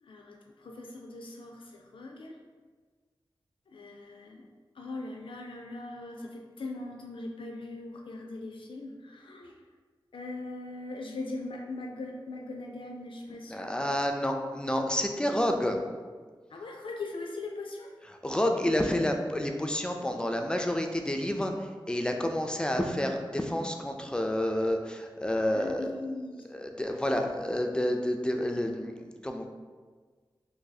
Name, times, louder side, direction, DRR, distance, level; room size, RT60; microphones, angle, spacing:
voice 1, 0.0-2.4 3.7-4.5 4.7-9.6 10.1-13.8 16.5-17.9 25.5-26.4, left 2 dB, 80° left, 1 dB, 0.4 m, -40 dB
voice 2, 13.5-15.8 18.2-25.9 26.5-29.5, left 1 dB, 10° left, 4 dB, 0.3 m, -29 dB
2.7 x 2.6 x 3.9 m, 1.5 s
wide cardioid pair, 75°, 9 cm